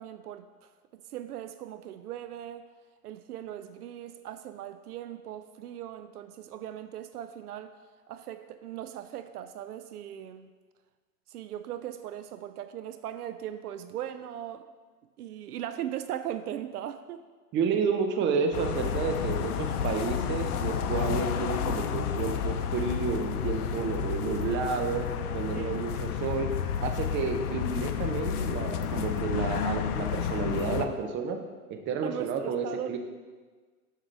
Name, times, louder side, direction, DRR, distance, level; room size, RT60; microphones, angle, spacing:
voice 1, 0.0-2.7 3.0-7.7 8.1-10.5 11.3-14.6 15.2-17.2 25.5-25.9 32.0-33.0, right 11 dB, 75° right, 11 dB, 0.5 m, -39 dB
voice 2, 17.5-25.1 25.3-26.5 26.8-31.4 31.7-33.0, right 5 dB, 25° right, 5 dB, 0.7 m, -30 dB
sound 1, 18.5-30.9, left 8 dB, 75° left, 0.7 m, -31 dB
7.3 x 6.6 x 3.4 m, 1.4 s
hypercardioid pair, 105°, 46 cm